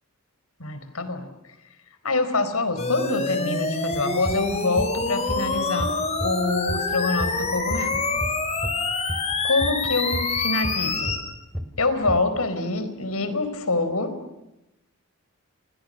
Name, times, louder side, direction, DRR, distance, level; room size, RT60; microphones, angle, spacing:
voice 1, 0.6-1.3 2.0-5.9 6.2-8.1 9.4-11.2 11.8-14.1, left 3 dB, 90° left, 11 dB, 4.5 m, -25 dB
sound 1, 2.8-11.2, left 3 dB, 30° left, 5.1 m, -26 dB
sound 2, 3.9-6.4 6.7-8.7 9.1-11.3 11.5-12.2, equal, ahead, 3.2 m, -31 dB
30.0 x 29.0 x 6.6 m, 0.90 s
head